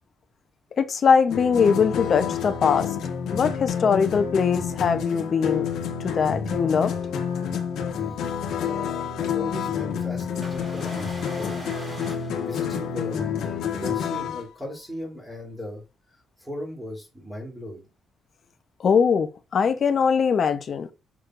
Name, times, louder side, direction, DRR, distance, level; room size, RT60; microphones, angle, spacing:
voice 1, 0.8-2.9 3.3-5.7 6.0-6.9 18.8-20.9, left 6 dB, 40° left, 0.8 m, -21 dB
sound 1, 1.3-14.4, left 7 dB, 80° left, 1.3 m, -29 dB
voice 2, 8.5-11.7 12.4-13.2 13.7-15.8 16.4-17.9, left 1 dB, ahead, 3.1 m, -37 dB
sound 2, 10.4-13.2, equal, 15° right, 3.5 m, -41 dB
6.4 x 6.1 x 2.6 m
cardioid pair, 180°, 0 cm